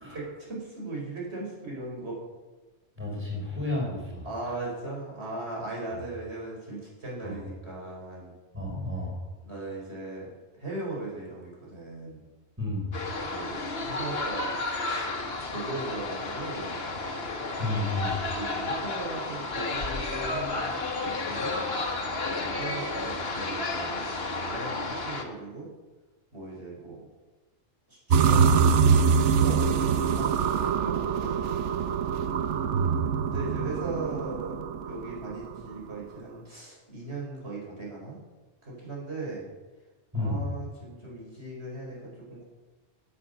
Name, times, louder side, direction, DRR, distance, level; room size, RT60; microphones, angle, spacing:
voice 1, 0.1-2.2 4.2-8.3 9.5-10.3 10.6-12.2 13.2-13.5 13.8-14.5 14.9-15.1 15.5-16.9 18.2-21.6 22.2-24.1 24.5-25.7 26.3-27.0 27.9-28.7 29.3-32.1 33.3-34.5 34.9-38.2 38.6-39.5 40.2-42.0 42.3-42.4, right 2 dB, 65° right, -4 dB, 5.1 m, -38 dB
voice 2, 3.0-4.5 5.9-6.0 7.2-7.5 8.5-9.2 12.6-13.0 17.6-18.2 40.1-40.5, left 2 dB, 10° right, -2 dB, 4.4 m, -32 dB
sound 1, 12.9-25.2, left 2 dB, 55° left, 1.8 m, -32 dB
sound 2, 28.1-35.2, right 6 dB, 80° right, 1.1 m, -24 dB
16.5 x 8.6 x 6.7 m, 1.2 s
omnidirectional pair, 1.2 m